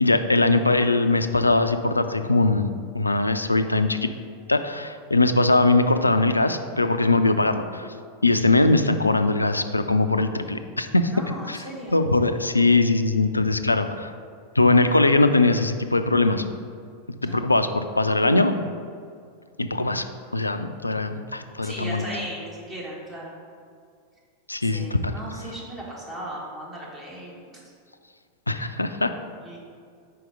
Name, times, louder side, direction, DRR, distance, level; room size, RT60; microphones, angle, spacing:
voice 1, 0.0-4.1 4.5-7.9 8.2-11.1 11.5-11.6 11.9-14.1 14.6-16.4 17.1-18.5 19.6-20.1 20.3-22.1 24.5-25.2 28.5-29.1, left 2 dB, 85° left, 9 dB, 0.3 m, -21 dB
voice 2, 11.1-12.0 17.2-17.5 21.6-23.3 24.6-27.6 28.5-28.6 29.4-29.6, right 1 dB, 20° right, -4 dB, 1.6 m, -37 dB
4.8 x 4.6 x 5.1 m, 2.2 s
figure-of-eight pair, 90°, 0 cm